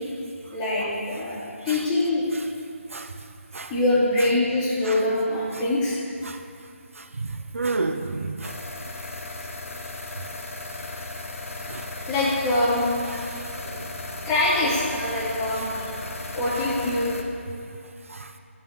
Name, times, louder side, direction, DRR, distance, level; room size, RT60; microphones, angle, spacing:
voice 1, 0.5-2.2 3.7-6.0 12.1-12.9 14.3-15.7 16.3-17.1, left 2 dB, 15° left, -9 dB, 3.5 m, -24 dB
voice 2, 7.0-8.6 11.7-11.9 13.1-13.4 13.6-14.0 18.1-18.3, right 3 dB, 75° right, 7 dB, 0.9 m, -31 dB
sound 1, 8.4-17.2, left 2 dB, 75° left, 1.7 m, -36 dB
14.0 x 6.4 x 8.6 m, 2.4 s
figure-of-eight pair, 160°, 7 cm